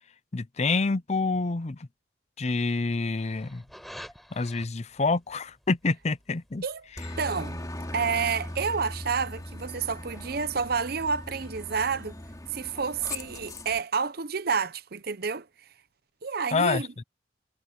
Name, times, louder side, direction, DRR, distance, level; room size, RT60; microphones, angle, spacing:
voice 1, 0.3-1.9 2.4-3.6 4.3-6.6 16.5-16.9, left 3 dB, 35° left, 0.6 m, -27 dB
sound 1, 3.2-12.8, equal, ahead, 5.0 m, -53 dB
Aircraft, 7.0-13.8, left 1 dB, 20° left, 2.8 m, -39 dB
voice 2, 7.2-7.6 7.9-12.2 12.5-15.5 16.2-16.9, right 5 dB, 55° right, 0.8 m, -29 dB
head